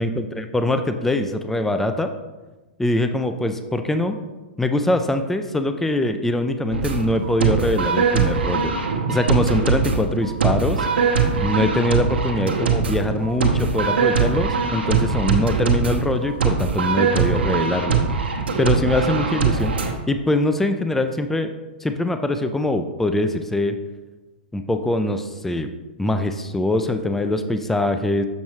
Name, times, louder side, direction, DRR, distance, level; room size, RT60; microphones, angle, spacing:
voice 1, 0.0-2.1 2.8-4.1 4.6-8.7 9.1-10.9 11.4-18.3 18.6-19.8 20.1-21.5 21.8-23.7 24.5-25.7 26.0-28.2, left 1 dB, 5° left, 8 dB, 0.4 m, -23 dB
sound 1, 6.7-19.9, right 5 dB, 75° right, 1.1 m, -22 dB
7.1 x 6.2 x 3.1 m, 1.2 s
hypercardioid pair, 110°, 6 cm